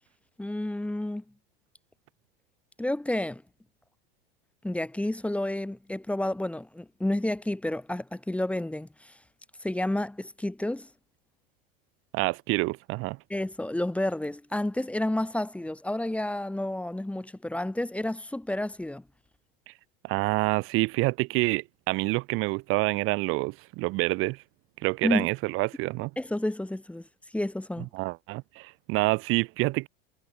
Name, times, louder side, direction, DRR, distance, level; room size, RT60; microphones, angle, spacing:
voice 1, 0.4-1.2 2.8-3.4 4.6-9.1 9.6-10.9 13.3-19.0 25.0-25.3 26.2-27.0 27.3-27.9, left 1 dB, 5° left, 1.5 m, -30 dB
voice 2, 12.1-13.2 19.7-19.8 20.0-24.4 24.8-26.1 27.8-29.9, right 23 dB, 45° right, 0.7 m, -27 dB
hypercardioid pair, 110°, 29 cm